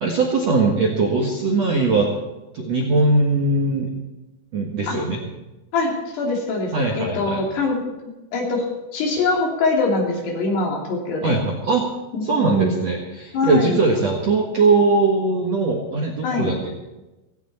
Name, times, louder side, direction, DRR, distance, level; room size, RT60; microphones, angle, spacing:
voice 1, 0.0-2.1 2.5-3.9 4.5-5.2 6.7-7.4 11.2-11.8 12.2-16.7, right 3 dB, 55° right, 0 dB, 1.9 m, -20 dB
voice 2, 5.7-7.8 8.3-8.7 8.9-11.3 12.1-12.9 13.3-13.8 16.2-16.5, left 3 dB, 60° left, 0 dB, 4.9 m, -23 dB
17.5 x 17.0 x 4.3 m, 1.1 s
omnidirectional pair, 5.4 m